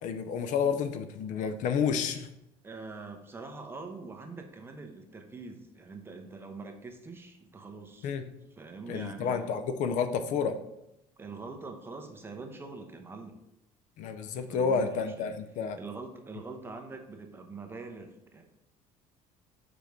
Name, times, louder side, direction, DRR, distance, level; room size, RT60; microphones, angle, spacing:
voice 1, 0.0-2.3 8.0-8.2 8.9-10.6 14.0-15.8, left 6 dB, 65° left, 9 dB, 0.6 m, -30 dB
voice 2, 2.6-8.1 8.6-9.5 11.2-13.4 14.5-15.4 15.8-18.5, right 3 dB, 15° right, 4 dB, 0.9 m, -44 dB
5.1 x 4.7 x 5.1 m, 0.84 s
cardioid pair, 135°, 14 cm